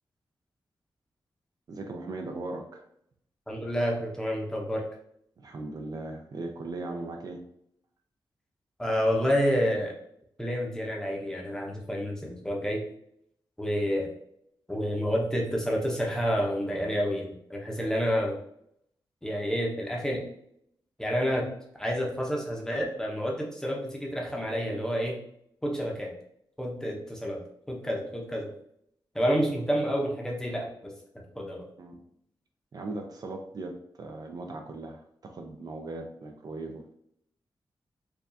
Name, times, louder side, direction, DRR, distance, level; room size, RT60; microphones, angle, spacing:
voice 1, 1.7-2.9 5.4-7.4 31.8-32.0 32.7-36.9, right 2 dB, 50° right, 3 dB, 0.4 m, -38 dB
voice 2, 3.5-4.8 8.8-9.9 10.4-12.9 13.6-14.1 14.7-18.4 19.2-20.2 21.0-21.5 21.8-25.2 25.6-26.1 26.6-27.4 27.7-28.5 29.1-30.9 31.4-31.7, equal, 5° left, -1 dB, 0.7 m, -29 dB
4.6 x 2.3 x 2.6 m, 0.71 s
wide cardioid pair, 165°, 9 cm